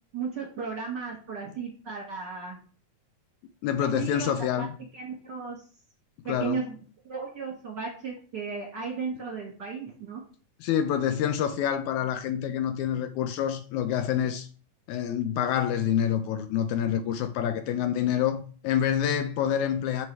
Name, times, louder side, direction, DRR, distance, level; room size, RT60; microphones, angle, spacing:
voice 1, 0.1-2.6 3.8-4.3 4.6-4.7 4.9-5.6 6.2-6.8 7.0-10.2, right 5 dB, 45° right, 1.7 m, -35 dB
voice 2, 3.6-4.7 6.3-6.6 10.6-14.5 14.9-20.1, left 9 dB, 80° left, 1.8 m, -27 dB
6.1 x 4.7 x 4.6 m
omnidirectional pair, 3.8 m